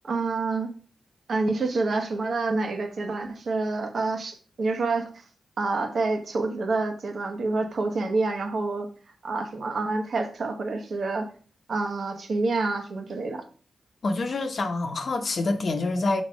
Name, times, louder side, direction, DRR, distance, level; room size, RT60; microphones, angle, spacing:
voice 1, 0.0-0.7 1.3-5.2 5.6-8.9 9.2-11.3 11.7-13.4, right 3 dB, 65° right, 1.2 m, -27 dB
voice 2, 14.0-16.2, left 3 dB, 60° left, 0.9 m, -26 dB
6.3 x 4.0 x 5.1 m
cardioid pair, 75°, 0 cm